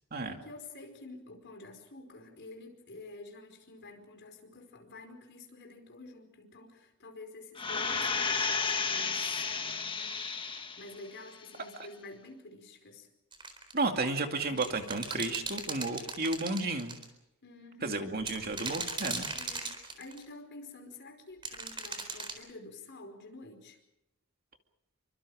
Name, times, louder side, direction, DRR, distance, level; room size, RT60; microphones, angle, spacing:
voice 1, 0.2-9.2 9.6-10.5 10.8-13.1 17.4-18.0 19.3-23.8, left 2 dB, 50° left, 4 dB, 5.0 m, -49 dB
sound 1, 7.6-11.0 11.4-11.5, left 5 dB, 25° left, 1.6 m, -32 dB
sound 2, 13.3-13.8 14.6-17.0 18.2-20.2 21.4-22.4, right 3 dB, 25° right, 4.2 m, -38 dB
voice 2, 13.7-17.0 17.8-19.3, right 3 dB, 45° right, 5 dB, 2.4 m, -32 dB
28.0 x 24.5 x 5.0 m, 0.84 s
head